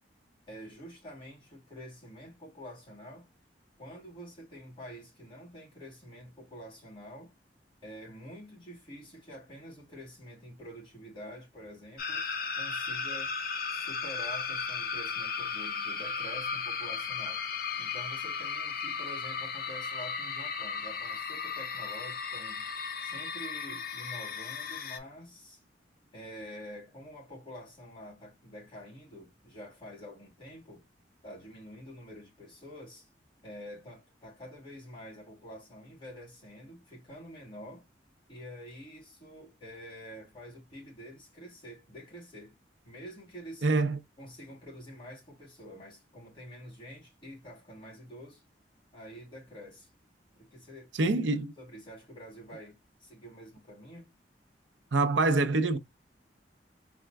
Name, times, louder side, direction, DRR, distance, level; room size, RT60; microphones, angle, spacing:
voice 1, 0.5-3.3 3.8-7.3 7.8-12.3 12.6-13.4 13.7-17.4 17.8-22.7 23.0-25.6 26.1-30.8 31.2-33.1 33.4-37.9 38.3-42.6 42.8-43.7 44.2-48.4 48.9-49.9 50.3-51.1 51.6-54.1, equal, 30° left, 3.0 m, -47 dB
sound 1, 12.0-25.0, left 5 dB, 55° left, 1.0 m, -35 dB
voice 2, 43.6-44.0 50.9-51.5 54.9-55.8, right 3 dB, 90° right, 0.6 m, -25 dB
4.3 x 3.5 x 2.2 m
head